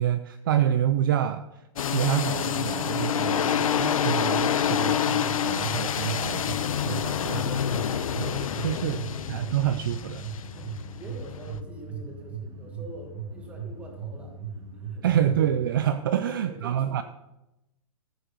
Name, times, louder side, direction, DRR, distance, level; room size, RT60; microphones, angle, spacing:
voice 1, 0.0-1.4 1.9-6.5 6.9-7.6 8.2-9.0 9.3-10.3 15.0-17.0, right 10 dB, 40° right, 10 dB, 0.5 m, -27 dB
sound 1, 1.8-11.6, left 8 dB, 75° left, 0.9 m, -27 dB
sound 2, 5.2-15.7, right 5 dB, 90° right, 2.0 m, -39 dB
voice 2, 10.5-15.1 16.1-17.0, right 1 dB, 5° right, 2 dB, 1.6 m, -45 dB
14.0 x 6.4 x 6.6 m, 0.94 s
hypercardioid pair, 175°, 18 cm